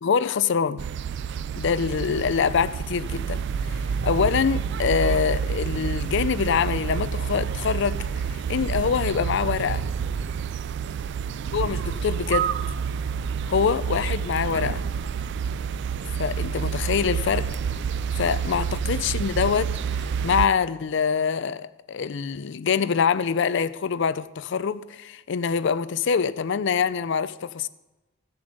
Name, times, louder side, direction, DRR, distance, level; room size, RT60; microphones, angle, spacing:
voice 1, 0.0-0.9 1.6-3.4 4.0-9.9 11.5-12.5 13.5-14.8 16.2-17.5 18.2-19.7 20.2-27.7, left 6 dB, 60° left, 0.4 m, -25 dB
sound 1, 0.8-20.5, right 6 dB, 60° right, 0.3 m, -28 dB
15.5 x 7.0 x 5.2 m
head